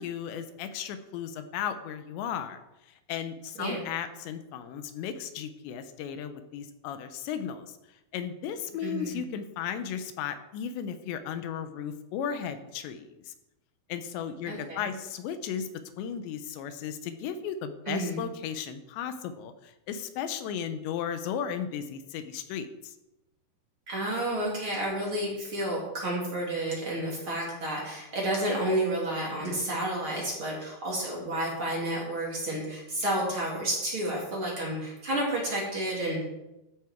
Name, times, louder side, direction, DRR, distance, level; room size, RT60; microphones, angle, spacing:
voice 1, 0.0-2.6 3.1-7.7 8.1-13.3 13.9-15.7 16.0-22.9, left 8 dB, 85° left, 9 dB, 3.2 m, -35 dB
voice 2, 8.8-9.2 14.5-14.9 17.9-18.2 23.9-36.3, right 1 dB, 30° right, -3 dB, 3.8 m, -31 dB
13.5 x 9.4 x 4.6 m, 0.93 s
omnidirectional pair, 5.0 m